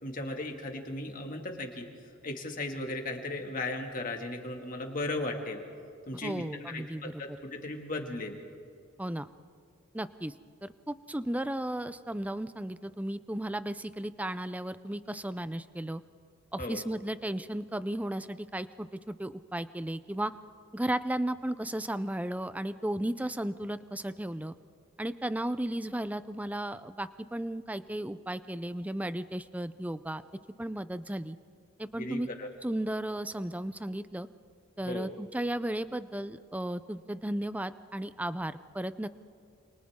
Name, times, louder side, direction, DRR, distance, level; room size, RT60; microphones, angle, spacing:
voice 1, 0.0-1.9 2.2-5.6 6.1-8.4 16.6-16.8 31.9-32.5 34.8-35.1, left 2 dB, 40° left, 2 dB, 2.3 m, -36 dB
voice 2, 6.2-7.2 9.0-9.3 9.9-10.3 10.6-16.0 16.5-20.3 20.7-24.5 25.0-30.2 30.6-31.4 31.8-32.3 32.6-34.3 34.8-39.1, right 1 dB, 5° right, 13 dB, 0.4 m, -34 dB
29.0 x 28.0 x 3.7 m, 2.4 s
head